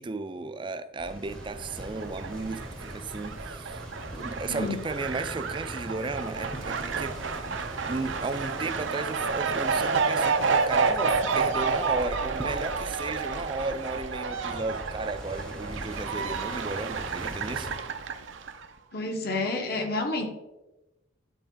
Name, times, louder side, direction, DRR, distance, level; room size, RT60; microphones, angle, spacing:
voice 1, 0.0-3.9 4.1-7.6 7.9-17.7, right 3 dB, 25° right, 0.4 m, -35 dB
sound 1, 1.0-17.8, equal, 5° left, 0.8 m, -42 dB
Fowl, 1.3-18.7, right 4 dB, 85° right, 0.6 m, -30 dB
voice 2, 18.9-20.3, left 2 dB, 55° left, 1.1 m, -29 dB
11.5 x 4.2 x 3.8 m
head